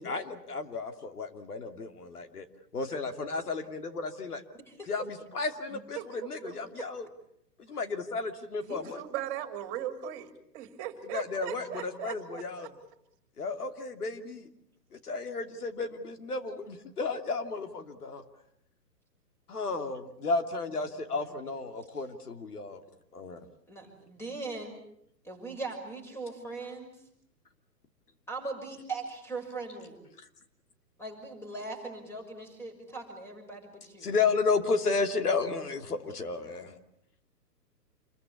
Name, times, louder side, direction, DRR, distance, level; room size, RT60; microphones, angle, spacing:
voice 1, 0.0-2.5 2.7-4.4 4.9-7.0 7.6-9.0 11.1-12.7 13.4-14.5 14.9-18.2 19.5-22.8 23.1-23.4 34.0-36.8, left 4 dB, 65° left, 7 dB, 2.9 m, -33 dB
voice 2, 5.7-6.6 8.6-10.3 10.5-12.7, right 10 dB, 30° right, 8 dB, 3.3 m, -39 dB
voice 3, 20.8-21.3 23.7-24.7 25.2-27.0 28.3-30.0 31.0-34.1, right 3 dB, 5° left, 5 dB, 6.2 m, -40 dB
28.0 x 22.0 x 8.4 m, 0.72 s
figure-of-eight pair, 125°, 49 cm